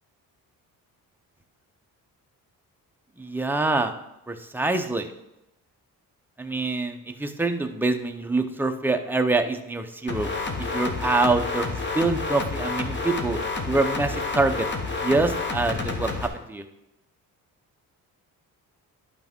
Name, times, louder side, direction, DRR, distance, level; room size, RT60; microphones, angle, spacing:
voice 1, 3.2-3.9 4.3-5.1 6.4-10.3 10.6-13.4 13.7-14.7 15.0-16.6, right 3 dB, 5° right, 5 dB, 0.6 m, -25 dB
sound 1, 10.1-16.3, left 3 dB, 30° left, 1.1 m, -29 dB
10.5 x 5.9 x 3.6 m, 0.89 s
cardioid pair, 115°, 35 cm